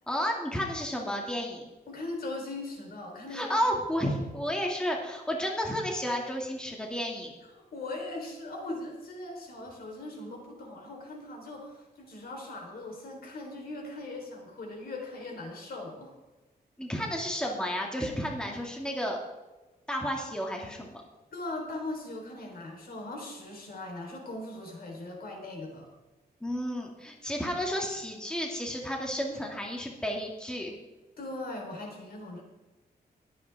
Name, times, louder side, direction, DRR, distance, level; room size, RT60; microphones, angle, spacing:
voice 1, 0.1-1.6 3.3-7.3 16.8-19.2 19.9-21.0 26.4-30.8, equal, 5° left, 0 dB, 2.1 m, -32 dB
voice 2, 1.9-3.7 4.0-4.1 7.7-16.1 21.3-25.9 31.2-32.4, left 2 dB, 65° left, 0 dB, 3.6 m, -39 dB
21.0 x 8.7 x 3.5 m, 1.1 s
wide cardioid pair, 130°, 16 cm